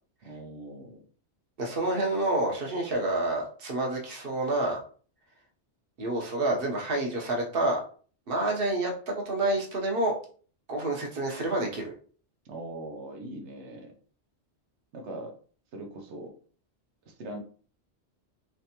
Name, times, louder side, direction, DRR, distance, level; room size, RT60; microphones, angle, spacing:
voice 1, 0.2-1.0 12.4-13.9 14.9-15.3 15.7-16.3 17.1-17.4, right 1 dB, 90° right, 3 dB, 1.1 m, -41 dB
voice 2, 1.6-4.8 6.0-7.8 8.3-10.1 10.7-11.9, right 2 dB, 55° right, 0 dB, 1.1 m, -28 dB
3.4 x 3.2 x 2.9 m, 0.42 s
omnidirectional pair, 1.1 m